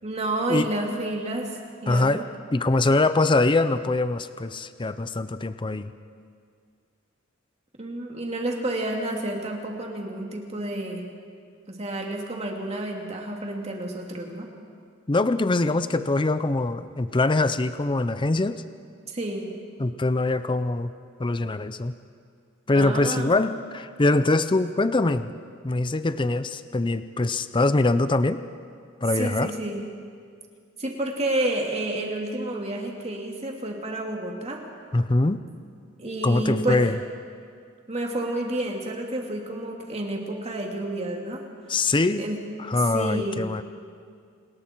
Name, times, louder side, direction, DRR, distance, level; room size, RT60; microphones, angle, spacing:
voice 1, 0.0-2.2 7.8-11.1 11.7-14.5 19.1-19.5 22.7-23.3 29.2-29.8 30.8-34.6 36.0-36.9 37.9-41.4 42.2-42.4 42.7-43.5, right 1 dB, 30° right, 1 dB, 2.7 m, -30 dB
voice 2, 1.9-2.2 2.5-5.9 15.1-18.6 19.8-20.9 21.2-21.9 22.7-25.3 25.6-28.4 29.0-29.5 34.9-35.4 36.2-37.0 41.7-42.2 42.6-43.6, left 2 dB, 25° left, 12 dB, 0.6 m, -23 dB
29.0 x 20.5 x 4.6 m, 2.2 s
head